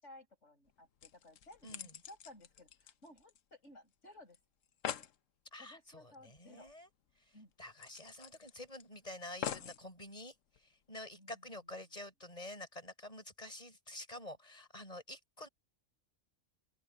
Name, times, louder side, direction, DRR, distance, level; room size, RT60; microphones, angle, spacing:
voice 1, 0.0-4.4 5.6-6.7 7.3-7.5 11.1-11.4, left 1 dB, 65° left, 6.8 m, -57 dB
sound 1, 0.6-0.7 1.0-3.6 3.9-4.0 4.3-4.4 4.6-5.1 6.7-6.8 7.1-7.2 7.8-8.8 9.4-9.8 10.5-10.6, left 9 dB, 85° left, 1.2 m, -44 dB
voice 2, 1.6-2.0 5.5-6.9 7.2-15.5, left 1 dB, 30° left, 7.1 m, -49 dB
open air
omnidirectional pair, 1.3 m